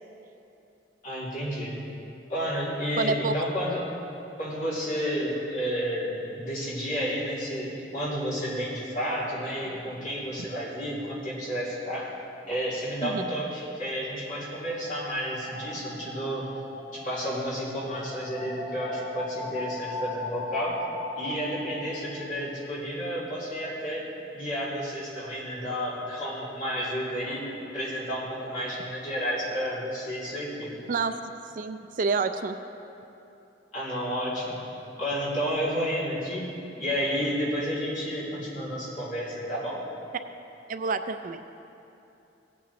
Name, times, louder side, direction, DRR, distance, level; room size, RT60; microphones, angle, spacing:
voice 1, 1.0-1.8 2.3-3.8 4.4-12.1 12.5-16.5 16.9-20.8 21.2-24.1 24.3-27.4 27.7-30.7 33.7-36.5 36.8-39.8, equal, 45° left, -7 dB, 2.8 m, -31 dB
voice 2, 3.0-3.3 13.0-13.2 30.9-31.2 31.5-32.6 40.7-41.4, right 4 dB, 45° right, 9 dB, 0.4 m, -28 dB
sound 1, 14.3-22.0, left 2 dB, 65° left, 2.6 m, -38 dB
17.0 x 8.6 x 3.1 m, 2.8 s
head